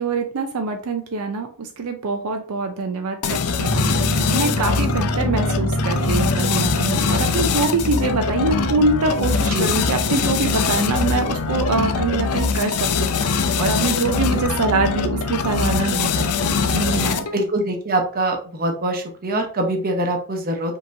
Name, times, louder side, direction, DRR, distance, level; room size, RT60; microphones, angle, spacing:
voice 1, 0.0-17.3, right 3 dB, 80° right, 5 dB, 0.5 m, -24 dB
sound 1, 3.2-17.4, left 5 dB, 85° left, 0.5 m, -22 dB
sound 2, 3.7-14.9, right 1 dB, 40° left, 0.7 m, -29 dB
voice 2, 17.3-20.8, right 1 dB, 40° right, 3 dB, 0.9 m, -23 dB
5.3 x 3.0 x 2.6 m, 0.43 s
head